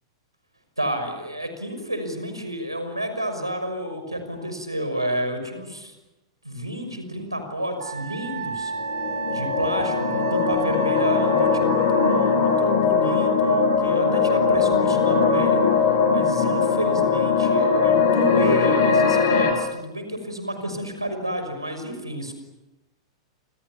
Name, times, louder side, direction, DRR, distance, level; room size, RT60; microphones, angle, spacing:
voice 1, 0.8-5.9 6.4-8.7 9.3-15.6 16.1-22.3, equal, 85° right, 7 dB, 6.0 m, -30 dB
Wind instrument woodwind instrument, 7.8-12.7, right 5 dB, 65° right, 5.3 m, -32 dB
sound 1, 8.8-19.5, left 5 dB, 50° left, 6.6 m, -20 dB
29.5 x 27.5 x 7.3 m, 0.99 s
figure-of-eight pair, 95°, 2 cm